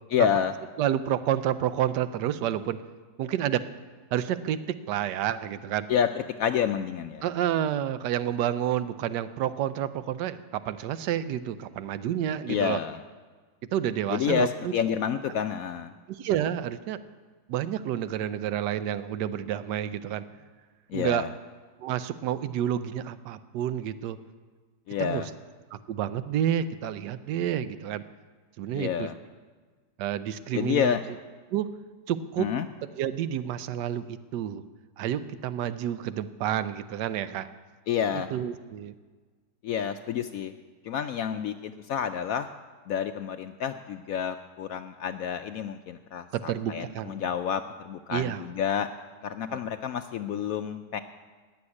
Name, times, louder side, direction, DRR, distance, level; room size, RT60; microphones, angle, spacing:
voice 1, 0.1-0.5 5.9-7.2 12.5-13.0 14.1-15.9 20.9-21.3 24.9-25.3 28.7-29.1 30.5-31.0 32.4-32.7 37.9-38.3 39.6-40.6 40.8-42.5 42.9-48.9 49.2-51.0, left 8 dB, 70° left, 8 dB, 0.8 m, -29 dB
voice 2, 0.8-2.8 3.2-3.6 4.1-4.6 4.9-5.9 7.2-12.8 13.7-14.7 16.1-17.0 17.5-20.2 20.9-21.3 21.8-24.2 25.0-25.2 25.7-28.0 28.6-29.1 30.0-31.0 31.5-31.7 32.1-32.5 32.8-34.6 35.0-37.5 38.1-38.9 46.3-47.2 48.1-48.4 49.5-49.6, right 10 dB, 75° right, 13 dB, 1.3 m, -29 dB
16.0 x 7.0 x 9.7 m, 1.4 s
omnidirectional pair, 1.9 m